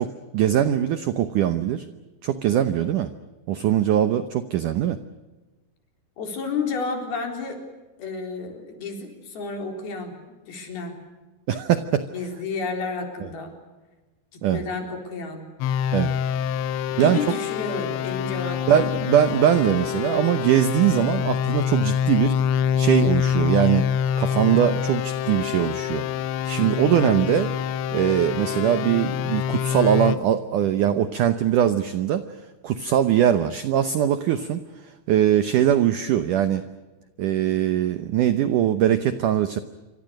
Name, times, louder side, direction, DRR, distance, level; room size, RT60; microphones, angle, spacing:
voice 1, 0.0-1.9 2.2-3.1 3.5-5.0 11.5-12.1 14.4-14.6 15.9-16.1 17.0-17.2 18.7-22.4 22.8-26.0 26.5-27.5 27.9-32.2 32.6-34.6 35.1-36.6 37.2-39.6, right 10 dB, 80° right, 11 dB, 1.8 m, -21 dB
voice 2, 6.2-7.6 8.0-11.0 12.1-13.5 14.3-15.5 16.9-18.9, left 4 dB, 60° left, 3 dB, 5.8 m, -31 dB
sound 1, 15.6-30.2, left 8 dB, 85° left, 3.3 m, -25 dB
27.5 x 25.0 x 6.5 m, 1.2 s
omnidirectional pair, 5.1 m